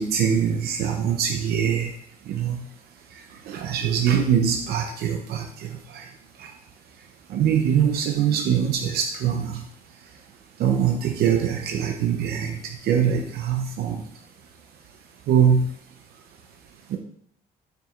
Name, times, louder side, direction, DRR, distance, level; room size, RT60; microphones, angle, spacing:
voice 1, 0.0-1.9 2.3-2.6 3.5-5.4 6.0-6.1 7.3-9.5 10.6-12.6 12.8-14.0 15.3-15.6 16.9-17.0, right 8 dB, 70° right, 3 dB, 0.7 m, -22 dB
7.5 x 6.2 x 2.5 m, 0.68 s
cardioid pair, 110°, 17 cm